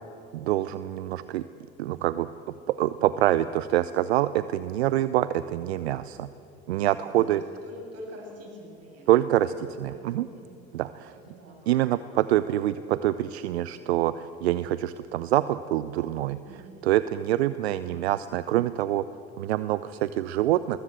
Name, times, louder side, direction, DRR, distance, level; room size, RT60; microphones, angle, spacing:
voice 1, 0.3-1.4 1.8-2.3 2.7-6.3 6.7-7.4 9.1-10.3 10.7-11.1 11.7-16.4 16.8-19.0 19.4-20.8, right 13 dB, 80° right, 15 dB, 0.6 m, -25 dB
voice 2, 7.0-9.1 9.7-10.5 11.3-11.9 16.5-16.8, equal, 50° right, 0 dB, 7.7 m, -46 dB
20.5 x 20.5 x 7.8 m, 2.8 s
hypercardioid pair, 55°, 31 cm